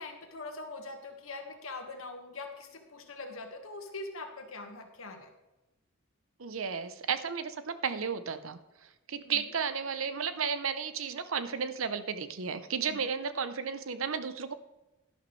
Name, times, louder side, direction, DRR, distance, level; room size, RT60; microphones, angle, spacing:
voice 1, 0.0-5.3 9.2-9.4 12.8-13.1, left 3 dB, 80° left, 4 dB, 1.6 m, -43 dB
voice 2, 6.4-8.6 9.1-14.5, right 6 dB, 75° right, 11 dB, 0.7 m, -33 dB
11.5 x 11.0 x 3.2 m, 1.0 s
head